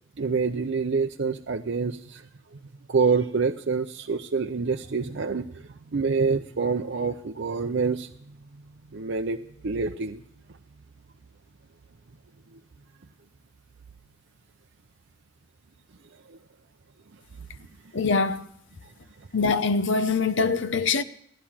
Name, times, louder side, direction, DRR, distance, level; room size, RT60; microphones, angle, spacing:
voice 1, 0.2-2.6 2.9-8.4 8.9-10.2 16.3-16.4 18.8-18.9, right 5 dB, 60° right, 0.6 m, -27 dB
voice 2, 17.9-18.5 19.3-21.0, left 4 dB, 60° left, 0.8 m, -23 dB
16.5 x 11.5 x 7.2 m
head